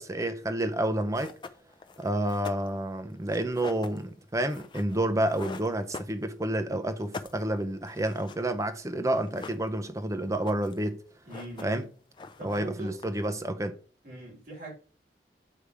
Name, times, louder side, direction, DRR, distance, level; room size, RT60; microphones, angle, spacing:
voice 1, 0.0-1.3 2.0-11.0 11.6-11.8 12.4-13.8, right 1 dB, 20° right, 0.6 m, -29 dB
sound 1, 0.7-0.8 1.1-6.6 6.9-8.8 9.1-10.0 10.3-10.9 11.1-11.9 12.1-13.4, left 3 dB, 25° left, 0.5 m, -44 dB
voice 2, 11.3-11.9 12.4-13.0 14.0-14.7, right 1 dB, 55° right, 3.4 m, -41 dB
8.2 x 3.4 x 4.8 m
head